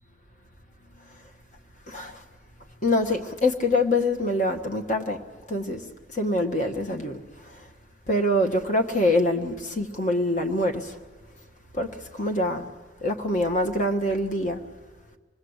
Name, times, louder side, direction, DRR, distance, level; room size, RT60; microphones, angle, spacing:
voice 1, 1.9-2.2 2.8-5.2 5.5-5.8 6.1-7.2 8.1-10.9 11.7-11.9 12.1-12.7 13.0-14.6, left 1 dB, 40° left, 1.5 m, -24 dB
26.0 x 19.5 x 8.1 m
head